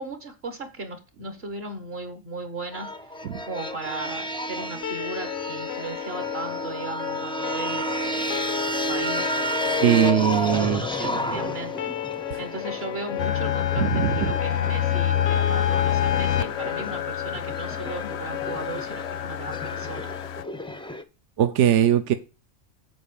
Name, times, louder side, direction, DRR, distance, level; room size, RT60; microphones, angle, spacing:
voice 1, 0.0-3.1 3.5-8.4 8.9-9.3 9.8-20.1, right 3 dB, 55° right, 1.5 m, -37 dB
sound 1, 2.7-21.0, equal, 10° left, 0.3 m, -32 dB
sound 2, 4.8-20.9, left 12 dB, 85° left, 1.1 m, -34 dB
voice 2, 9.8-10.8 12.3-12.4 13.8-14.3 21.4-22.1, right 11 dB, 70° right, 1.0 m, -20 dB
sound 3, 13.2-20.4, left 10 dB, 65° left, 0.8 m, -27 dB
8.1 x 4.4 x 6.9 m
omnidirectional pair, 1.3 m